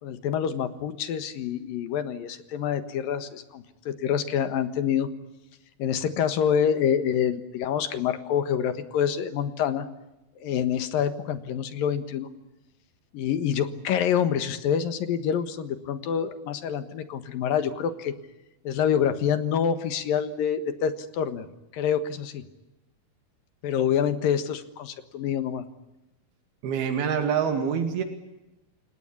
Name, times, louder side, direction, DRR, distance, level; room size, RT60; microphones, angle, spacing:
voice 1, 0.0-5.1 5.8-9.9 10.4-12.3 13.1-18.1 18.6-21.5 21.7-22.5 23.6-25.6, left 8 dB, 75° left, 11 dB, 3.1 m, -26 dB
voice 2, 26.6-28.0, right 7 dB, 90° right, 6 dB, 4.2 m, -26 dB
29.5 x 17.5 x 9.8 m, 0.97 s
omnidirectional pair, 4.3 m